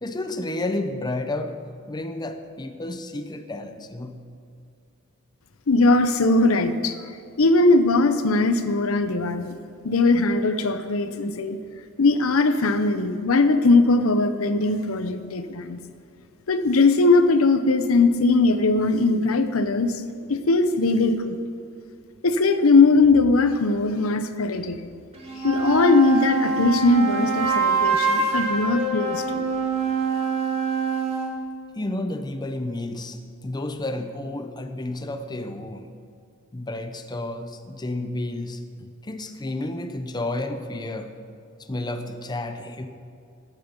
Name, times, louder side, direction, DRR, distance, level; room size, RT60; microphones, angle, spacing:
voice 1, 0.0-1.6 1.9-4.2 31.7-35.9 36.5-41.1 41.7-42.9, left 2 dB, 20° left, 7 dB, 0.6 m, -31 dB
voice 2, 5.7-7.0 7.4-9.5 9.8-11.6 12.0-15.8 16.5-20.0 20.3-21.4 22.2-24.8 25.4-29.4, left 3 dB, 85° left, 10 dB, 0.8 m, -20 dB
sound 1, 25.1-31.3, right 3 dB, 30° right, 1.9 m, -24 dB
14.0 x 9.1 x 5.3 m, 2.4 s
head